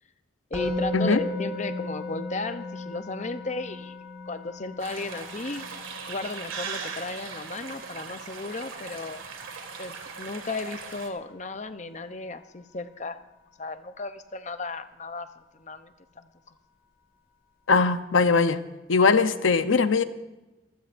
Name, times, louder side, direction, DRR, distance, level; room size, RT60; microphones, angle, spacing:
voice 1, 0.5-4.0 4.3-5.6 6.1-9.2 9.8-13.2 13.6-15.3 15.5-16.3, left 3 dB, 35° left, 10 dB, 0.6 m, -35 dB
Musical instrument, 0.5-11.6, left 2 dB, 15° right, 5.2 m, -37 dB
sound 1, 4.8-11.1, right 5 dB, 90° right, 2.1 m, -39 dB
voice 2, 17.7-18.6 18.9-20.0, left 4 dB, 80° left, 10 dB, 0.8 m, -20 dB
25.5 x 15.0 x 2.6 m, 1.1 s
head